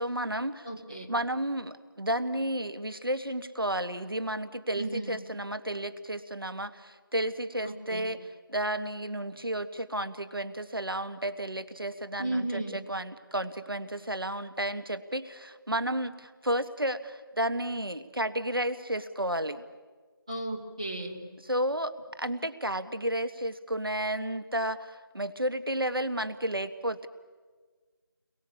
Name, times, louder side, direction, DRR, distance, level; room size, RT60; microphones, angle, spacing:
voice 1, 0.0-0.7 1.1-8.2 8.5-19.7 21.5-27.1, right 1 dB, 70° right, 11 dB, 1.8 m, -32 dB
voice 2, 0.6-1.1 4.7-5.2 7.6-8.1 12.2-12.8 20.3-21.2, right 2 dB, 15° right, -2 dB, 1.4 m, -34 dB
29.0 x 22.5 x 8.6 m, 1.4 s
figure-of-eight pair, 175°, 12 cm